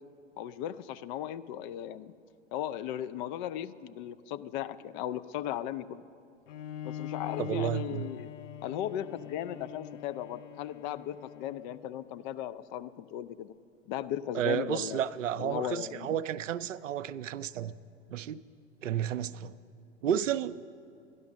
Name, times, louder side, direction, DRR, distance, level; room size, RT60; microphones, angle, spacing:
voice 1, 0.4-2.1 2.5-6.0 6.8-8.3 8.6-13.5 13.9-15.0 15.4-16.2, left 11 dB, 40° left, 14 dB, 0.4 m, -37 dB
Bowed string instrument, 6.5-12.1, left 10 dB, 75° left, 0.7 m, -43 dB
voice 2, 7.4-8.1 14.3-17.7 18.1-18.4 18.8-19.5 20.0-20.6, right 10 dB, 80° right, 15 dB, 0.5 m, -32 dB
12.5 x 11.0 x 6.2 m, 2.4 s
figure-of-eight pair, 90°, 37 cm